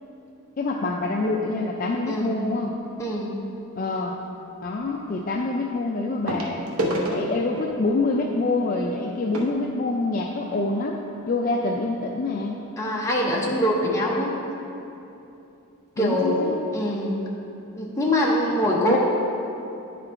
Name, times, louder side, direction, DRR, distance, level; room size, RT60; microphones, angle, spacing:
voice 1, 0.6-2.7 3.8-4.2 4.6-6.6 6.9-12.6 16.0-16.6 18.7-19.0, left 2 dB, 40° left, 0 dB, 0.3 m, -26 dB
voice 2, 2.1-2.4 3.0-3.4 12.8-14.3 16.0-16.4 16.7-17.2 17.8-19.0, equal, 15° left, -3 dB, 0.8 m, -23 dB
sound 1, 2.7-3.0 4.7-4.8 6.3-10.7 11.5-11.6 11.8-11.9 12.5-12.6, right 1 dB, 80° right, 0.8 m, -32 dB
9.7 x 3.8 x 4.4 m, 2.8 s
head